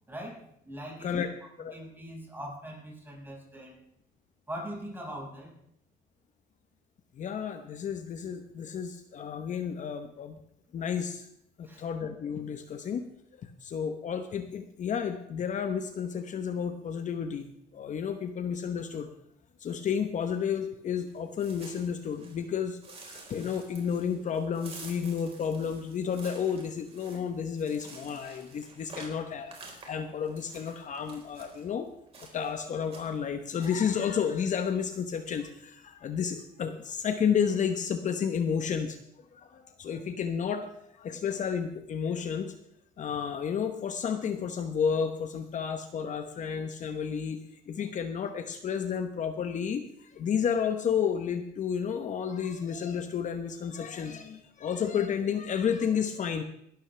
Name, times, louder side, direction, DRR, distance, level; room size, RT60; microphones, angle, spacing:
voice 1, 0.1-1.3 1.7-3.8 4.5-5.5 11.6-11.9, equal, 10° right, -2 dB, 5.5 m, -41 dB
voice 2, 7.2-10.4 10.7-11.3 11.6-13.1 13.3-19.1 19.6-31.9 32.3-39.0 39.3-42.5 43.0-47.4 47.7-56.4, left 7 dB, 45° left, 7 dB, 1.0 m, -31 dB
sound 1, 21.1-22.5 22.8-31.6 32.1-32.6 32.8-33.3 33.6-33.9, right 3 dB, 35° right, 4.3 m, -49 dB
19.0 x 13.0 x 3.3 m, 0.73 s
cardioid pair, 110°, 17 cm